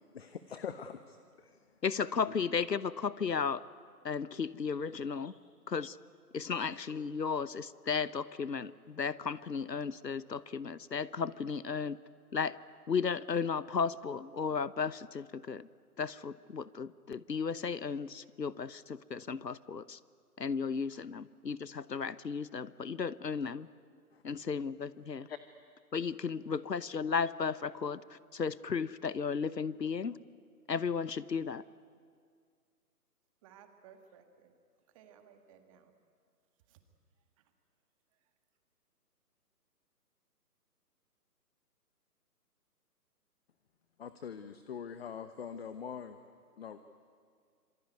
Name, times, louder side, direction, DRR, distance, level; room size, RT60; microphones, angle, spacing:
voice 1, 0.1-1.6 4.6-4.8 24.1-24.2 25.3-25.4 44.0-46.2 46.6-46.8, left 7 dB, 40° left, 10 dB, 1.0 m, -43 dB
voice 2, 1.8-3.6 4.0-5.3 5.7-6.0 6.3-12.0 12.3-12.6 12.9-15.7 16.0-20.0 20.4-23.7 24.2-25.3 25.9-30.2 30.7-31.6, left 5 dB, 90° left, 18 dB, 1.0 m, -34 dB
voice 3, 33.4-34.5 34.9-36.0 36.7-36.8 37.4-37.5 38.1-38.3, right 8 dB, 20° right, 7 dB, 1.8 m, -60 dB
26.5 x 23.5 x 9.6 m, 2.1 s
figure-of-eight pair, 140°, 48 cm